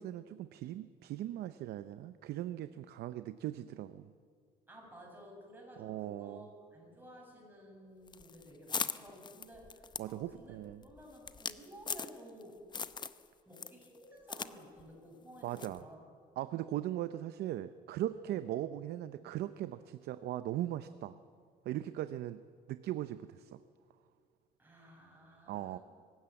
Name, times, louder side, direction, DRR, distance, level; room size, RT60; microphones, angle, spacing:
voice 1, 0.0-4.1 5.8-6.5 10.0-10.8 15.4-15.9 16.4-21.2 21.6-22.4 22.7-23.6 25.5-25.8, right 13 dB, 70° right, 12 dB, 0.6 m, -39 dB
voice 2, 4.7-12.6 13.5-16.0 18.3-18.4 24.6-25.8, equal, 10° right, -1 dB, 7.3 m, -54 dB
sound 1, 8.1-12.4 12.7-13.2 13.5-14.5 14.8-14.9 15.6-15.8, left 5 dB, 25° left, 0.7 m, -40 dB
23.0 x 13.0 x 8.8 m, 2.1 s
cardioid pair, 110°, 17 cm